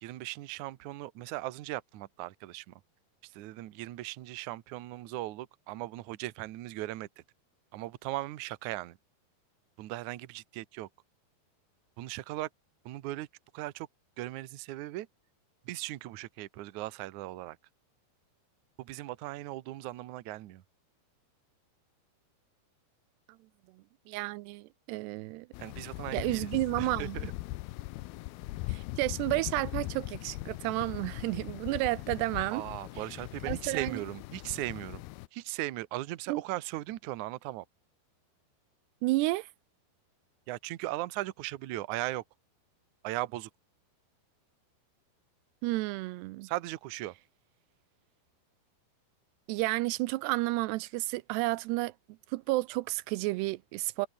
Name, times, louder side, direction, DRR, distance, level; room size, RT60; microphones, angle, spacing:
voice 1, 0.0-2.7 3.2-7.1 7.7-9.0 9.8-10.9 12.0-12.5 12.9-13.3 13.5-13.9 14.2-15.1 15.7-17.6 18.8-20.6 25.6-26.5 26.8-27.3 32.5-35.0 35.3-37.7 40.5-42.2 43.0-43.5 46.4-47.1, right 17 dB, 70° right, 1.9 m, -38 dB
voice 2, 24.1-25.5 26.1-27.2 28.7-32.6 33.5-34.0 36.3-36.4 39.0-39.5 45.6-46.5 49.5-51.9 52.3-54.1, right 20 dB, 90° right, 2.8 m, -31 dB
sound 1, 25.5-35.3, left 18 dB, 80° left, 2.5 m, -40 dB
omnidirectional pair, 4.8 m